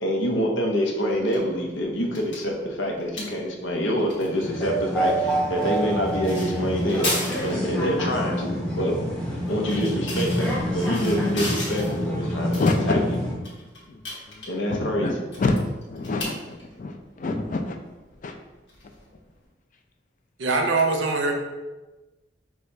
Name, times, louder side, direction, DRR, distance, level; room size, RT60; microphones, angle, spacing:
voice 1, 0.0-9.0 9.5-12.6 12.9-13.0 14.5-15.1, equal, 80° left, 1 dB, 0.7 m, -26 dB
sound 1, 1.1-19.4, left 1 dB, 65° left, 1.4 m, -38 dB
sound 2, 4.3-13.3, right 1 dB, 5° left, 0.8 m, -27 dB
voice 2, 12.6-13.0 13.3-13.4 13.9-14.4 14.7-15.6 15.9-17.8 18.2-18.3, left 3 dB, 45° left, 4 dB, 0.4 m, -27 dB
voice 3, 20.4-21.3, right 3 dB, 75° right, 3 dB, 0.6 m, -22 dB
6.3 x 2.3 x 2.6 m, 1.1 s
head